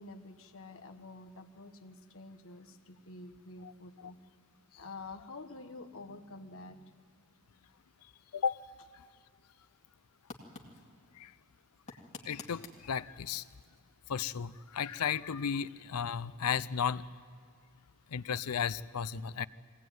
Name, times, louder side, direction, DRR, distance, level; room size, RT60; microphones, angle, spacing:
voice 1, 0.0-4.2 4.7-7.0, left 2 dB, 65° left, 6 dB, 1.5 m, -48 dB
sound 1, 10.2-16.5, left 3 dB, 30° left, 2.3 m, -54 dB
voice 2, 12.3-13.4 14.1-17.0 18.1-19.5, left 7 dB, 80° left, 16 dB, 0.6 m, -34 dB
23.0 x 18.0 x 9.3 m, 2.3 s
head